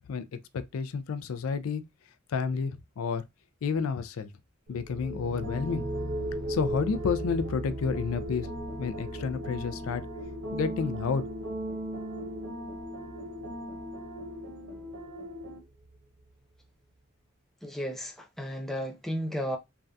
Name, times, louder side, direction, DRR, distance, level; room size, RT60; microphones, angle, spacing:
voice 1, 0.7-1.8 2.3-3.2 3.6-4.3 4.7-5.8 6.5-8.5 8.8-10.0 10.5-11.2, left 5 dB, 85° left, 0.4 m, -30 dB
sound 1, 4.7-16.2, right 1 dB, 50° right, 0.5 m, -39 dB
sound 2, 5.3-15.6, equal, 85° right, 1.0 m, -39 dB
voice 2, 17.6-19.6, equal, ahead, 0.3 m, -33 dB
3.3 x 2.3 x 2.5 m
head